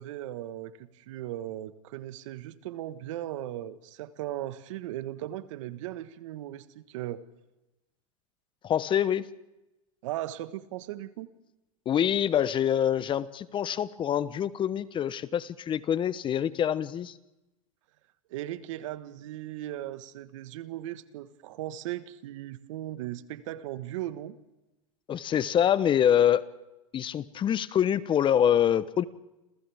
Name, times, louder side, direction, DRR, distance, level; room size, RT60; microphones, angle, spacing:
voice 1, 0.0-7.2 10.0-11.3 18.3-24.3, right 14 dB, 65° right, 12 dB, 1.5 m, -37 dB
voice 2, 8.6-9.3 11.9-17.1 25.1-26.4 26.9-29.0, left 9 dB, 30° left, 16 dB, 0.9 m, -25 dB
30.0 x 27.5 x 3.6 m, 1.0 s
hypercardioid pair, 105°, 17 cm